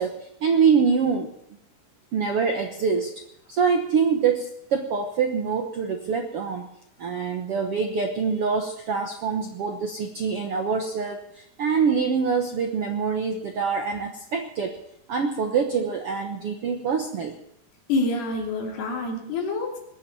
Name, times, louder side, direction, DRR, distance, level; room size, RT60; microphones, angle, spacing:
voice 1, 0.0-1.3 2.1-3.1 3.5-6.7 7.0-14.8 15.1-17.3, right 5 dB, 70° right, 5 dB, 1.3 m, -25 dB
voice 2, 17.9-19.8, left 2 dB, 90° left, 1 dB, 4.9 m, -27 dB
20.5 x 7.2 x 9.4 m, 0.77 s
omnidirectional pair, 4.4 m